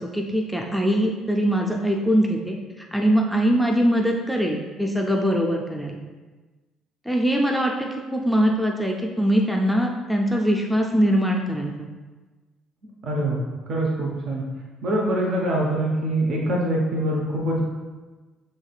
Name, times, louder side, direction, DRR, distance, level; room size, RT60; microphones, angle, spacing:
voice 1, 0.0-6.0 7.1-11.9, equal, ahead, -1 dB, 0.5 m, -22 dB
voice 2, 13.0-13.4 13.7-14.4 14.8-17.6, right 1 dB, 50° right, -2 dB, 0.8 m, -24 dB
6.3 x 3.2 x 2.4 m, 1.3 s
figure-of-eight pair, 50°, 0 cm